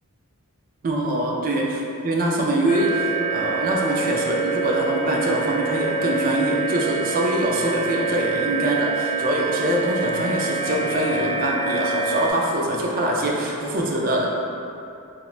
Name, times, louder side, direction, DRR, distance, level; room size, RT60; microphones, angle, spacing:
voice 1, 0.8-14.3, right 1 dB, 40° right, -1 dB, 0.3 m, -24 dB
sound 1, 2.7-12.3, right 4 dB, 40° left, 0.3 m, -26 dB
2.9 x 2.1 x 2.3 m, 2.7 s
head